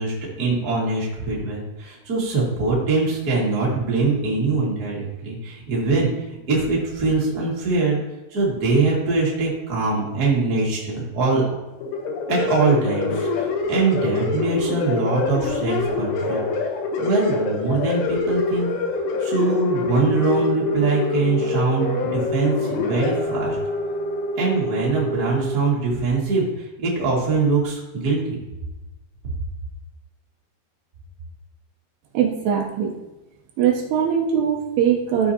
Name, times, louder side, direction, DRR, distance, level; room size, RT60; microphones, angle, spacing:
voice 1, 0.0-8.0 8.3-11.4 12.3-16.4 17.0-18.7 19.2-23.6 24.4-28.4, right 3 dB, 30° right, -5 dB, 1.9 m, -23 dB
sound 1, 11.8-25.6, left 3 dB, 90° left, 3.1 m, -25 dB
voice 2, 32.1-32.9 33.6-35.3, right 8 dB, 80° right, 1 dB, 2.9 m, -21 dB
13.5 x 5.6 x 2.9 m, 1.0 s
omnidirectional pair, 4.8 m